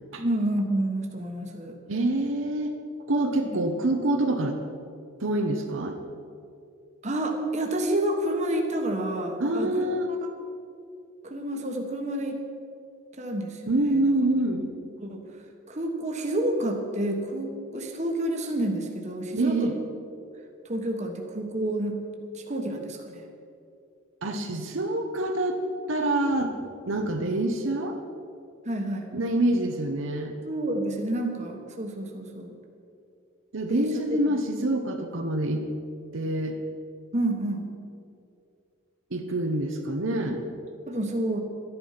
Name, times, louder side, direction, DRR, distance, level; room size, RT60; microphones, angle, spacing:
voice 1, 0.2-1.8 3.4-3.6 7.0-9.8 10.2-10.3 11.2-12.4 13.2-13.7 14.0-14.1 15.0-15.2 15.7-19.7 20.7-22.0 22.3-23.2 28.6-29.1 30.4-32.5 33.7-33.9 34.3-34.4 37.1-37.7 40.9-41.4, right 1 dB, 35° right, 2 dB, 1.4 m, -29 dB
voice 2, 1.9-2.8 3.1-4.6 5.2-6.0 9.4-10.1 13.7-14.7 19.4-19.7 24.2-25.6 25.9-26.6 26.9-28.0 29.1-30.3 33.5-35.7 36.1-36.6 39.1-40.4, right 1 dB, 70° right, 3 dB, 1.0 m, -26 dB
13.0 x 10.5 x 5.8 m, 2.5 s
head